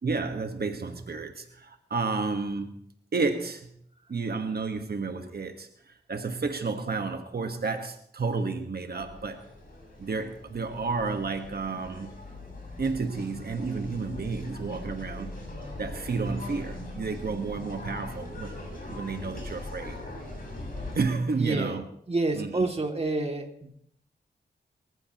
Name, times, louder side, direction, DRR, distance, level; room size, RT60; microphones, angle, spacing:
voice 1, 0.0-2.7 3.1-3.7 4.1-9.4 10.0-12.1 12.8-15.3 15.7-20.0 20.9-21.8 22.3-22.7, right 4 dB, 60° right, 6 dB, 1.5 m, -31 dB
sound 1, 9.0-21.0, left 2 dB, 50° left, 7.2 m, -41 dB
voice 2, 21.3-21.8 22.1-23.7, right 2 dB, 35° right, 3 dB, 2.5 m, -28 dB
23.5 x 14.5 x 3.0 m, 0.67 s
wide cardioid pair, 85°, 18 cm